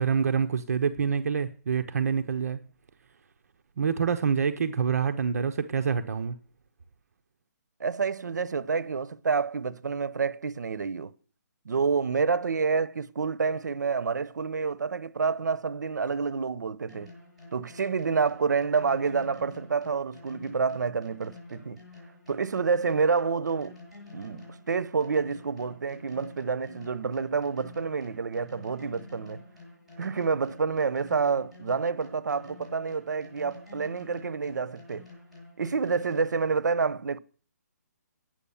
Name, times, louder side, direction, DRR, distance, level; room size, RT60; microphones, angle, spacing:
voice 1, 0.0-2.6 3.8-6.4, right 6 dB, 60° right, 0.8 m, -26 dB
voice 2, 7.8-11.1 11.7-17.1 17.5-21.8 22.3-23.8 24.1-29.4 30.0-35.0 35.6-37.2, right 5 dB, 85° right, 0.8 m, -28 dB
sound 1, 16.9-36.5, left 3 dB, ahead, 7.1 m, -49 dB
10.0 x 7.7 x 7.1 m
hypercardioid pair, 165°, 9 cm